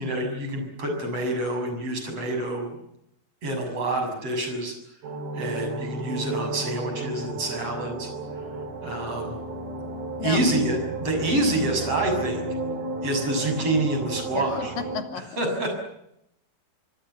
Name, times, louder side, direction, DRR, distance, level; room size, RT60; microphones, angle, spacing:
voice 1, 0.0-2.8 3.4-4.7 5.3-8.1 8.8-9.4 10.2-12.4 13.0-14.7 15.4-15.7, right 1 dB, 40° right, 4 dB, 7.7 m, -27 dB
sound 1, 5.0-15.0, right 2 dB, 80° right, 5.7 m, -33 dB
voice 2, 14.3-15.3, left 6 dB, 70° left, 7 dB, 4.1 m, -32 dB
26.0 x 24.5 x 7.0 m, 0.77 s
omnidirectional pair, 4.3 m